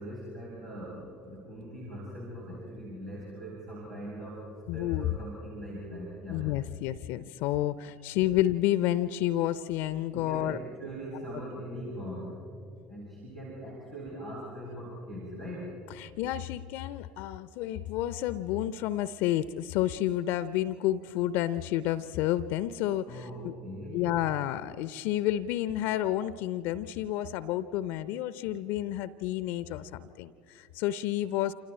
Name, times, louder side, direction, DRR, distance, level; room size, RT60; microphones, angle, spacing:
voice 1, 0.0-4.4 4.7-6.4 10.1-12.4 12.9-15.7 23.0-24.0, equal, 90° right, -10 dB, 6.9 m, -41 dB
voice 2, 4.7-5.1 6.3-10.6 15.9-23.5 23.9-31.5, left 13 dB, 55° left, 16 dB, 0.5 m, -30 dB
29.0 x 27.0 x 4.4 m, 2.5 s
figure-of-eight pair, 60°, 4 cm